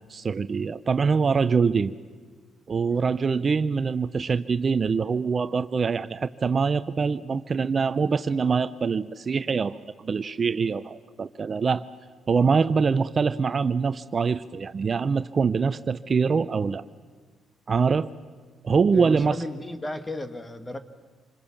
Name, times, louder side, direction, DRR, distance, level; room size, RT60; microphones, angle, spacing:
voice 1, 0.0-1.9 2.7-11.9 12.3-16.8 17.7-18.1 18.6-19.4, right 5 dB, 40° right, 13 dB, 0.6 m, -24 dB
voice 2, 18.9-20.8, left 1 dB, 20° left, 9 dB, 1.8 m, -34 dB
26.5 x 21.0 x 7.3 m, 1.5 s
cardioid pair, 80°, 0 cm